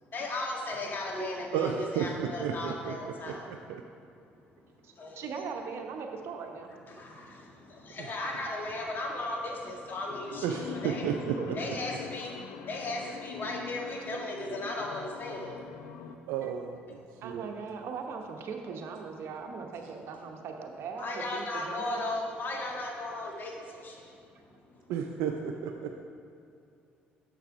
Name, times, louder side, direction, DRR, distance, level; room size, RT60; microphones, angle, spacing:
voice 1, 0.1-3.5 4.9-5.2 6.9-11.0 11.6-15.7 21.0-24.2 24.7-24.9, left 2 dB, 45° left, -1 dB, 1.7 m, -36 dB
voice 2, 1.5-2.9 3.2-3.8 8.0-8.1 10.4-11.5 16.3-17.5 24.9-26.0, right 7 dB, 80° right, 4 dB, 0.4 m, -33 dB
voice 3, 4.8-6.7 11.4-11.6 14.0-14.1 16.4-16.5 17.2-22.1, right 5 dB, 60° right, 3 dB, 0.9 m, -40 dB
sound 1, 10.1-16.2, left 7 dB, 75° left, 0.5 m, -43 dB
6.8 x 5.9 x 4.8 m, 2.5 s
hypercardioid pair, 65°, 5 cm